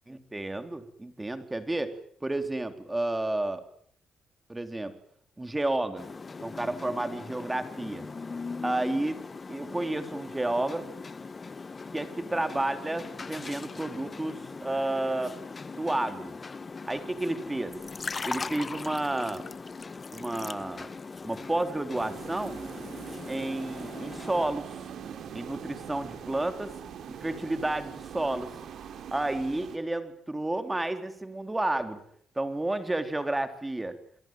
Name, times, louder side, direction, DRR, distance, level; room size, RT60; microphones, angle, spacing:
voice 1, 0.1-2.0 2.2-3.6 4.5-4.9 5.4-6.1 6.4-8.1 8.6-9.2 9.5-10.9 11.9-15.4 15.7-16.4 16.9-17.8 18.3-19.4 20.1-20.9 21.2-22.6 23.3-24.7 25.3-26.7 27.1-28.6 29.1-32.0 32.4-34.0, right 2 dB, 15° right, 8 dB, 3.7 m, -31 dB
sound 1, 6.0-24.5, left 4 dB, 30° left, 1.2 m, -40 dB
sound 2, 21.9-29.8, right 8 dB, 65° right, 5.0 m, -42 dB
28.0 x 22.0 x 9.3 m, 0.64 s
cardioid pair, 90°, 0 cm